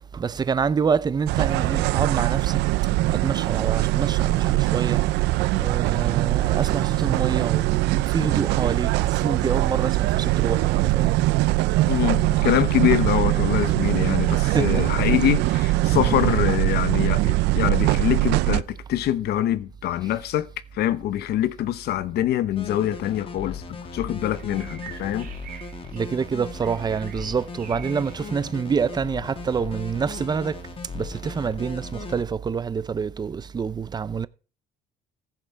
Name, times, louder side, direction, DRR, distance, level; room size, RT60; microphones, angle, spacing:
voice 1, 0.1-2.7 3.1-5.1 5.4-11.3 11.8-12.0 14.4-15.0 16.1-16.4 25.9-30.7 30.9-34.3, right 6 dB, 25° right, 0.6 m, -27 dB
sound 1, 1.3-18.6, right 19 dB, 85° right, 0.5 m, -22 dB
voice 2, 11.9-20.5 20.7-25.3, left 12 dB, 70° left, 1.0 m, -24 dB
sound 2, 22.6-32.2, left 5 dB, 30° left, 1.5 m, -38 dB
sound 3, 23.6-30.5, right 9 dB, 60° right, 2.2 m, -47 dB
14.5 x 7.5 x 4.6 m
cardioid pair, 110°, 17 cm